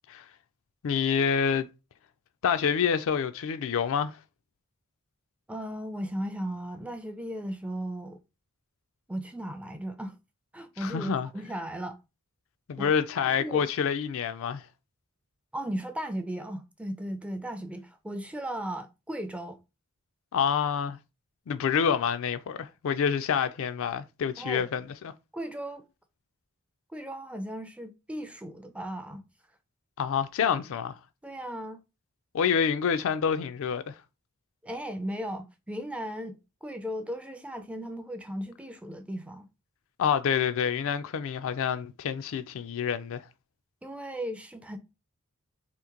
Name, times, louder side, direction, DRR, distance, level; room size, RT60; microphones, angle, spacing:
voice 1, 0.8-1.7 2.4-4.2 10.8-11.3 12.7-14.7 20.3-21.0 21.5-25.1 30.0-31.0 32.3-34.0 40.0-43.2, left 7 dB, 65° left, 0.4 m, -27 dB
voice 2, 5.5-8.2 9.1-10.2 10.5-12.0 12.8-12.9 13.4-13.7 15.5-19.6 24.4-24.7 25.3-25.8 26.9-29.2 31.2-31.8 34.6-39.5 43.8-44.8, equal, 5° right, 0.4 m, -36 dB
2.9 x 2.5 x 3.7 m
head